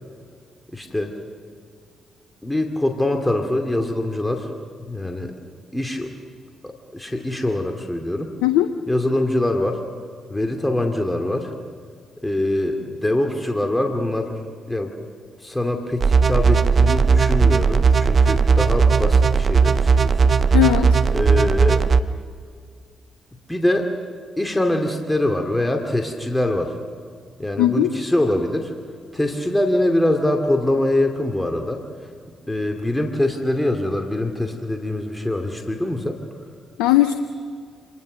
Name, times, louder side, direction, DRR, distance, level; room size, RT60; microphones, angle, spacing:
voice 1, 0.7-1.1 2.4-4.5 4.8-5.3 5.7-6.1 6.6-8.3 8.9-9.8 10.3-11.5 12.2-14.4 14.7-14.9 15.4-20.3 21.1-21.8 23.5-23.9 24.4-26.7 27.4-28.7 29.1-31.8 32.5-36.2, left 1 dB, 10° left, 4 dB, 2.4 m, -23 dB
sound 1, 16.0-22.0, right 5 dB, 50° right, 0.8 m, -16 dB
voice 2, 20.5-21.0 27.6-27.9 36.8-37.1, left 13 dB, 80° left, 10 dB, 0.7 m, -17 dB
25.5 x 19.5 x 6.5 m, 2.1 s
hypercardioid pair, 40°, 0 cm